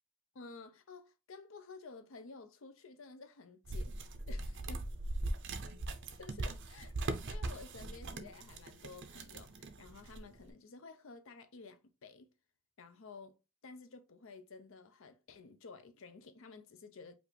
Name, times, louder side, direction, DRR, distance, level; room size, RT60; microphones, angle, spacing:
voice 1, 0.3-3.9 4.3-4.9 6.1-6.9 7.2-12.3 12.8-13.4 13.6-17.2, left 4 dB, 65° left, 0.6 m, -53 dB
sound 1, 3.7-10.4, right 2 dB, 55° right, 0.6 m, -40 dB
5.1 x 2.5 x 3.2 m
head